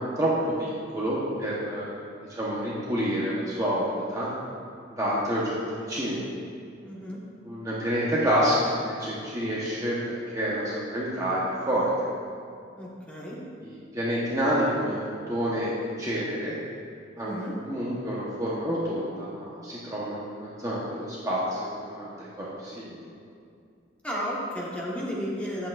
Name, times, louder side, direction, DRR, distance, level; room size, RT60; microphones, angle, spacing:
voice 1, 0.2-1.9 2.3-4.3 4.9-5.6 5.9-6.3 7.4-10.0 10.3-11.9 13.6-15.0 15.3-15.7 16.0-16.5 17.2-23.0, equal, 20° right, -7 dB, 0.9 m, -28 dB
voice 2, 6.8-7.2 12.8-13.4 17.1-17.5 24.0-25.7, equal, 5° left, -6 dB, 1.3 m, -33 dB
10.0 x 7.7 x 2.4 m, 2.4 s
head